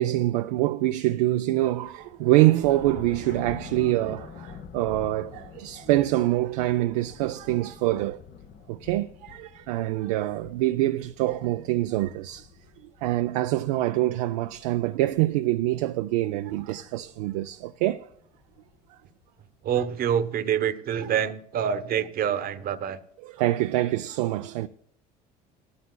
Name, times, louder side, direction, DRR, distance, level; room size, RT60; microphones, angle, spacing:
voice 1, 0.0-8.2 8.7-12.5 13.0-18.1 23.2-24.7, right 16 dB, 85° right, 0.4 m, -25 dB
sound 1, 1.6-19.5, left 7 dB, 50° left, 1.0 m, -47 dB
voice 2, 19.6-23.0, right 9 dB, 50° right, 1.0 m, -26 dB
18.5 x 13.5 x 2.2 m
supercardioid pair, 80°, 19 cm